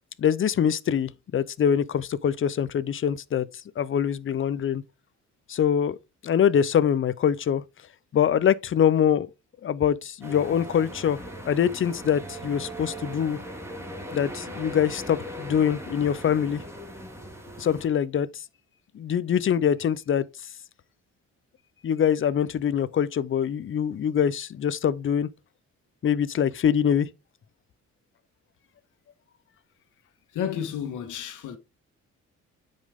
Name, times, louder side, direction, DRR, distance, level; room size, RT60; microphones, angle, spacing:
voice 1, 0.2-3.5 3.8-4.8 5.5-6.0 6.2-7.6 8.1-9.3 9.6-11.2 11.4-13.4 14.1-16.6 17.6-18.4 18.9-20.3 21.8-25.3 26.0-27.1, left 8 dB, 40° left, 0.7 m, -24 dB
sound 1, 10.2-17.9, right 1 dB, 10° right, 2.2 m, -39 dB
voice 2, 30.3-31.6, left 9 dB, 80° left, 1.7 m, -31 dB
8.9 x 5.4 x 3.7 m
cardioid pair, 90°, 30 cm